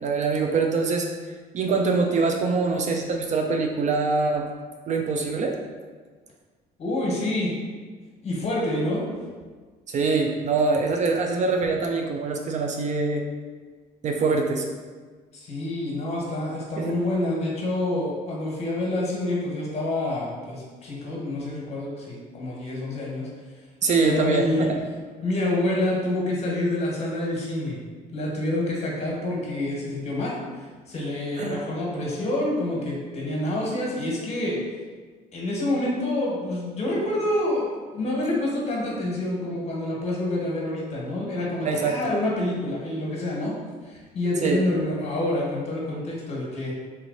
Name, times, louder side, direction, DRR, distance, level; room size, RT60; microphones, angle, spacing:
voice 1, 0.0-1.1 1.5-4.5 4.9-5.6 9.9-13.3 14.0-14.7 16.8-17.0 23.8-24.7 31.4-31.6 41.6-42.1 44.4-44.6, right 4 dB, 45° right, 3 dB, 0.4 m, -24 dB
voice 2, 6.8-7.5 8.2-9.0 15.4-23.3 24.0-24.7 25.2-27.8 28.1-30.4 30.9-34.6 35.3-37.7 37.9-43.5 43.8-46.7, left 1 dB, 40° left, -3 dB, 1.4 m, -27 dB
3.3 x 3.1 x 3.9 m, 1.5 s
cardioid pair, 110°, 17 cm